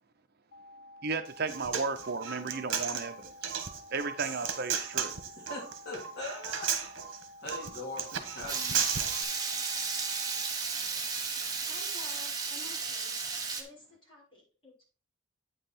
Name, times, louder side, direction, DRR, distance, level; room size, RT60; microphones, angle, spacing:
sound 1, 0.5-10.5, left 1 dB, 85° left, 1.3 m, -52 dB
voice 1, 1.0-3.5 3.9-5.1, right 4 dB, 50° right, 0.7 m, -34 dB
Human voice, 1.3-9.2, right 7 dB, 65° right, 1.3 m, -35 dB
voice 2, 5.3-6.7 7.4-8.9, left 2 dB, 55° left, 2.4 m, -41 dB
Water tap faucet / Liquid, 8.5-13.6, right 4 dB, 20° right, 1.4 m, -34 dB
voice 3, 11.7-13.2 13.6-14.8, left 2 dB, 25° left, 5.3 m, -52 dB
8.9 x 5.7 x 4.2 m
head